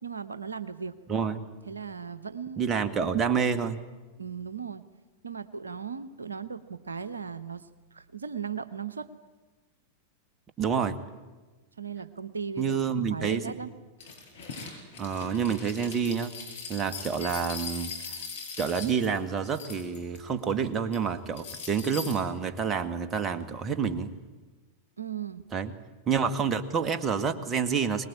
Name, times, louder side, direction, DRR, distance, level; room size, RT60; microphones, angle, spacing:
voice 1, 0.0-1.0 1.7-2.7 3.0-3.3 4.2-4.8 5.2-9.1 11.8-12.8 13.1-13.7 25.0-25.4, right 6 dB, 85° right, 12 dB, 0.9 m, -37 dB
voice 2, 1.1-1.5 2.6-3.8 10.6-11.0 12.6-13.5 15.0-16.3 16.7-17.9 18.6-24.1 25.5-25.7 26.1-28.1, right 6 dB, 25° right, 9 dB, 1.9 m, -28 dB
sound 1, 14.0-20.2 20.5-21.0 21.4-22.2, left 5 dB, 65° left, 6.0 m, -40 dB
24.0 x 20.0 x 8.8 m, 1.2 s
figure-of-eight pair, 95°, 0 cm